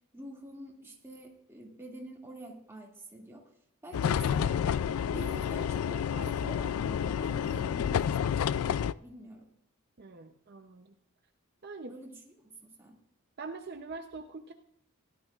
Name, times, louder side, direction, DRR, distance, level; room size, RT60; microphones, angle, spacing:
voice 1, 0.1-3.5 3.8-4.7 5.0-9.5 11.9-13.0, right 1 dB, 10° right, -1 dB, 2.2 m, -46 dB
sound 1, 3.9-8.9, left 8 dB, 90° left, 0.3 m, -29 dB
voice 2, 10.0-10.9 11.6-11.9 13.4-14.5, right 3 dB, 50° right, 5 dB, 0.6 m, -43 dB
17.0 x 12.0 x 2.4 m, 0.77 s
head